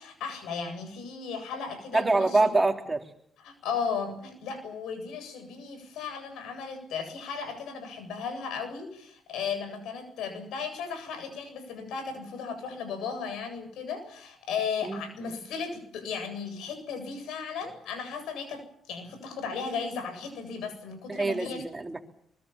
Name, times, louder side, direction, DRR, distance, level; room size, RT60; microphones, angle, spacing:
voice 1, 0.0-2.5 3.4-21.6, left 5 dB, 85° left, 9 dB, 8.0 m, -35 dB
voice 2, 1.9-3.0 14.8-15.0 21.1-22.0, right 2 dB, 20° right, 4 dB, 3.7 m, -25 dB
24.0 x 23.5 x 7.4 m, 0.66 s
cardioid pair, 90°, 0 cm